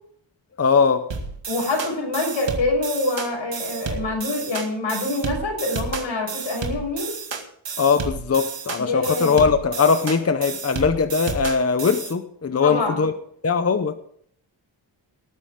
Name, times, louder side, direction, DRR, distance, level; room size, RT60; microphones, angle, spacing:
voice 1, 0.6-1.1 7.8-13.1 13.4-14.0, left 5 dB, 30° left, 0.8 m, -20 dB
sound 1, 1.1-12.1, right 4 dB, 70° right, 2.2 m, -31 dB
voice 2, 1.5-7.1 8.8-9.5 12.6-13.0, left 2 dB, 85° left, 6.5 m, -25 dB
19.5 x 9.7 x 3.7 m
wide cardioid pair, 155°, 45 cm